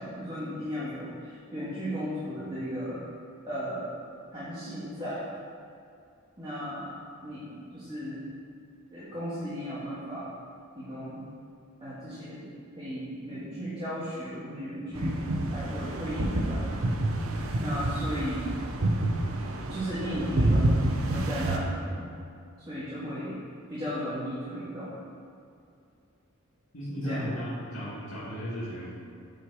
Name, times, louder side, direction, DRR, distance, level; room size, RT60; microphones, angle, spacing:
voice 1, 0.0-3.0 3.5-3.9 4.3-5.3 6.4-7.0 7.2-8.2 8.9-10.3 10.7-11.2 11.8-12.5 12.7-15.2 15.5-16.9 17.6-18.6 19.7-22.1 22.6-23.4 23.7-25.0 26.9-27.4 27.8-27.9, equal, 20° right, -11 dB, 1.9 m, -35 dB
sound 1, 14.9-21.6, right 1 dB, 70° right, 0.8 m, -28 dB
voice 2, 26.7-28.9, equal, 75° left, -8 dB, 2.0 m, -35 dB
8.9 x 6.2 x 4.8 m, 2.5 s
head